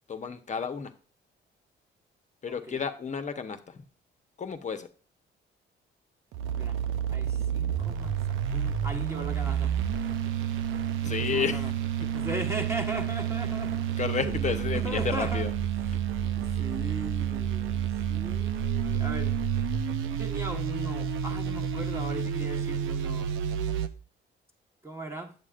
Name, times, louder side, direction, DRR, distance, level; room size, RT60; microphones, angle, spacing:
voice 1, 0.1-0.9 2.4-3.8 4.4-4.9 11.0-11.7 14.0-15.5, left 6 dB, 40° left, 1.0 m, -31 dB
voice 2, 2.5-2.8 6.5-6.8 7.1-8.2 8.5-9.7 11.2-11.7 12.1-13.9 14.2-15.5 16.4-17.8 18.1-19.4 20.1-23.3 24.8-25.3, right 1 dB, 15° right, 1.3 m, -38 dB
sound 1, 6.3-23.9, right 9 dB, 85° right, 0.6 m, -30 dB
8.3 x 8.2 x 2.5 m
cardioid pair, 90°, 20 cm